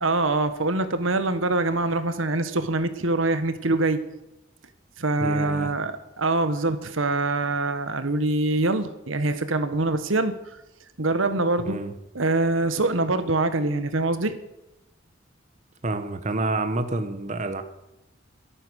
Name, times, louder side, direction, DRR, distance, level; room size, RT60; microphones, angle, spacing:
voice 1, 0.0-4.0 5.0-10.3 11.0-11.8 12.1-14.4, right 2 dB, 80° right, 11 dB, 1.4 m, -24 dB
voice 2, 5.2-5.7 11.7-11.9 15.8-17.6, right 2 dB, 35° right, 9 dB, 1.1 m, -28 dB
22.5 x 9.3 x 6.4 m, 0.94 s
head